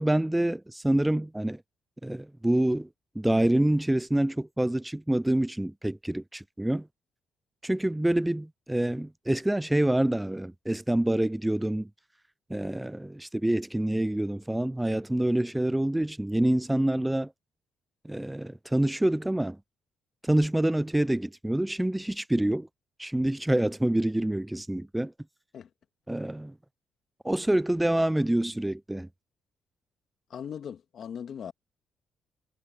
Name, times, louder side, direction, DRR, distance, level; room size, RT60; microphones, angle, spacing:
voice 1, 0.0-1.6 2.0-2.9 3.2-6.9 7.6-11.9 12.5-17.3 18.1-19.6 20.2-22.7 23.0-25.1 26.1-26.5 27.2-29.1, right 1 dB, 10° right, 0.4 m, -26 dB
voice 2, 30.3-31.5, left 8 dB, 60° left, 2.2 m, -39 dB
cardioid pair, 90°, 0 cm